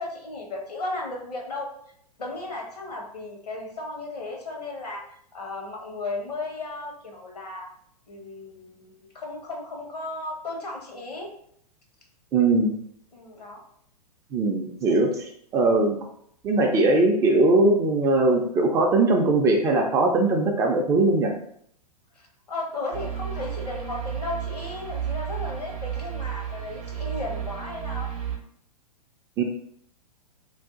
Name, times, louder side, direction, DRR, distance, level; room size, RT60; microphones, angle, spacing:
voice 1, 0.0-1.7 2.2-7.7 8.1-11.3 13.1-13.6 22.1-28.1, left 2 dB, 80° left, 0 dB, 1.0 m, -35 dB
voice 2, 12.3-12.8 14.3-16.0 16.4-21.3 29.4-29.5, right 2 dB, 15° right, 2 dB, 0.3 m, -20 dB
sound 1, 22.9-28.4, right 9 dB, 60° right, 0.7 m, -32 dB
2.6 x 2.3 x 3.6 m, 0.68 s
figure-of-eight pair, 105°, 20 cm